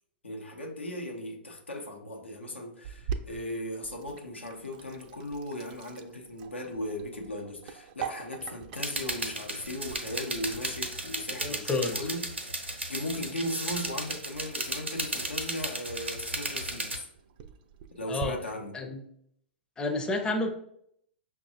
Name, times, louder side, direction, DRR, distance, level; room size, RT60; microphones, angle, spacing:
voice 1, 0.2-17.1 17.9-18.8, left 1 dB, 85° left, 0.7 m, -37 dB
Sink (filling or washing), 2.8-18.3, right 7 dB, 45° right, 0.4 m, -45 dB
sound 1, 8.8-17.0, right 2 dB, 90° right, 0.7 m, -35 dB
voice 2, 11.4-11.9 18.1-18.4 18.7-19.0 19.8-20.5, left 2 dB, 15° left, 0.5 m, -30 dB
5.9 x 2.3 x 2.7 m
figure-of-eight pair, 105°, 6 cm